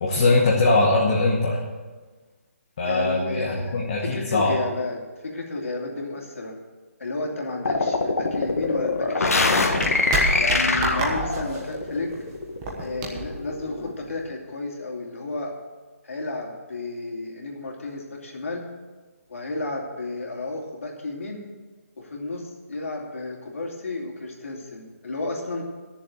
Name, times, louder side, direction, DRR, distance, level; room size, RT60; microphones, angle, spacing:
voice 1, 0.0-1.6 2.8-4.6, left 2 dB, 25° left, -3 dB, 1.2 m, -21 dB
voice 2, 2.8-6.5 7.0-9.7 10.4-12.1 12.8-15.5 16.0-18.6 19.3-21.4 22.0-25.6, left 2 dB, 65° left, 0 dB, 2.9 m, -32 dB
sound 1, 7.6-13.9, left 3 dB, 85° left, 1.5 m, -24 dB
sound 2, 8.3-14.3, right 2 dB, 15° right, 1.2 m, -31 dB
11.5 x 7.0 x 7.8 m, 1.3 s
hypercardioid pair, 180°, 8 cm